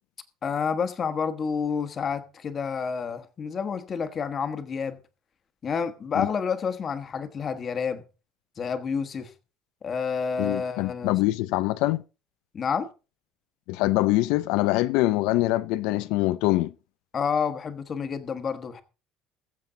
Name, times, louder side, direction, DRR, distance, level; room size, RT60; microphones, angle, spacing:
voice 1, 0.4-5.0 5.6-8.0 8.6-9.3 9.8-11.1 12.5-12.9 17.1-18.8, left 6 dB, 30° left, 1.3 m, -29 dB
voice 2, 10.4-12.0 13.7-16.7, left 18 dB, 85° left, 0.5 m, -24 dB
21.0 x 7.6 x 3.8 m
cardioid pair, 165°, 0 cm